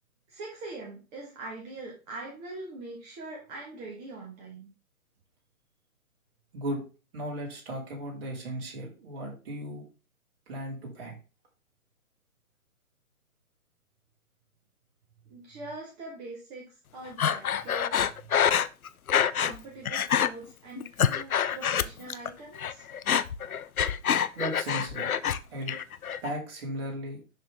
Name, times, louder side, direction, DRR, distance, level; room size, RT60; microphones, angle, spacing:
voice 1, 0.3-4.7 15.3-17.9 19.4-22.8, right 2 dB, 15° right, -2 dB, 1.3 m, -42 dB
voice 2, 6.5-6.8 7.1-9.8 10.5-11.2 24.4-25.1 25.5-25.8 26.2-27.2, right 1 dB, 45° right, -2 dB, 3.9 m, -36 dB
Breathing, 17.2-19.6 19.9-20.3 20.8-22.3 22.6-25.4 25.7-26.3, left 8 dB, 75° left, 0.7 m, -26 dB
11.5 x 4.0 x 3.5 m, 0.31 s
figure-of-eight pair, 135°, 43 cm